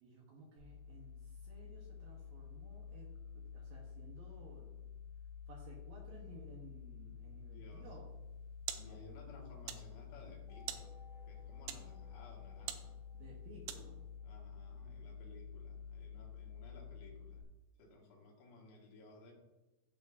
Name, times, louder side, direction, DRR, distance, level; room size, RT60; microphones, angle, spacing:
voice 1, 0.0-4.8 5.5-8.1 8.7-9.0 13.1-14.0, right 2 dB, 70° right, -2 dB, 2.3 m, -57 dB
sound 1, 0.6-17.4, left 6 dB, 45° right, 3.4 m, -50 dB
voice 2, 7.4-7.9 8.8-10.9 11.3-13.0 14.2-17.4 17.8-19.3, left 2 dB, 80° left, -1 dB, 4.2 m, -58 dB
sound 2, 8.1-14.2, right 12 dB, 85° right, 3.2 m, -49 dB
sound 3, 10.5-14.2, left 5 dB, 15° right, 1.1 m, -63 dB
15.0 x 7.1 x 2.7 m, 1.1 s
omnidirectional pair, 5.3 m